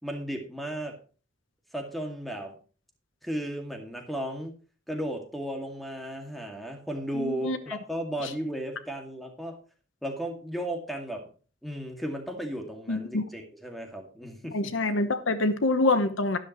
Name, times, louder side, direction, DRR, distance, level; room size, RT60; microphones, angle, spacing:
voice 1, 0.0-1.0 1.7-2.6 3.2-4.5 4.9-9.6 10.0-11.3 11.6-14.6, right 1 dB, ahead, 2.2 m, -35 dB
voice 2, 7.1-7.6 12.9-13.2 14.5-16.4, left 2 dB, 85° left, 1.1 m, -26 dB
12.0 x 11.0 x 3.1 m
head